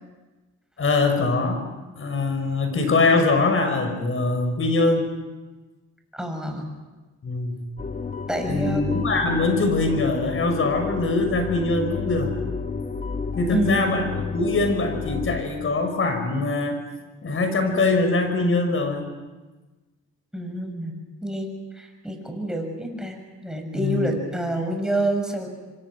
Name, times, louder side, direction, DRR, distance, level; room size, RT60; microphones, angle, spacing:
voice 1, 0.8-1.6 2.0-5.1 7.2-7.6 8.5-12.3 13.4-16.8 17.2-19.1 23.7-24.1, left 3 dB, 45° left, 6 dB, 6.1 m, -23 dB
voice 2, 6.1-6.7 8.3-8.8 13.5-14.0 20.3-20.9 21.2-21.5 21.7-25.5, right 1 dB, ahead, 3 dB, 7.0 m, -27 dB
sound 1, 7.8-15.4, left 5 dB, 30° left, 1.7 m, -31 dB
27.5 x 25.0 x 6.3 m, 1.2 s
cardioid pair, 90°, 30 cm